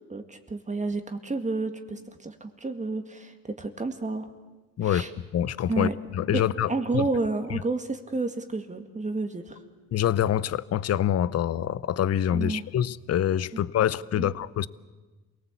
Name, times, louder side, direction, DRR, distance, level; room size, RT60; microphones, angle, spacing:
voice 1, 0.1-4.3 4.8-5.1 5.7-5.9 6.3-9.6 12.3-12.6 13.5-13.6 14.1-14.3, right 3 dB, 25° right, 2.1 m, -30 dB
voice 2, 5.3-7.0 9.9-14.7, left 10 dB, 55° left, 0.8 m, -26 dB
27.5 x 18.5 x 8.3 m
cardioid pair, 90°, 30 cm